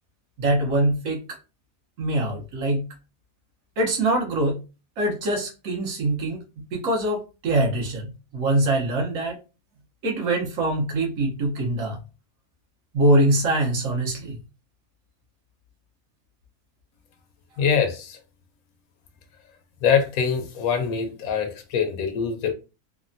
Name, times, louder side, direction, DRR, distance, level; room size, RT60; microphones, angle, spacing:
voice 1, 0.4-1.2 2.0-2.9 3.8-4.6 5.0-6.4 6.7-9.4 10.0-12.0 12.9-14.4, right 1 dB, 65° right, 1.3 m, -23 dB
voice 2, 17.6-18.2 19.8-22.5, left 7 dB, 75° left, 1.0 m, -23 dB
3.3 x 2.2 x 2.5 m
omnidirectional pair, 1.6 m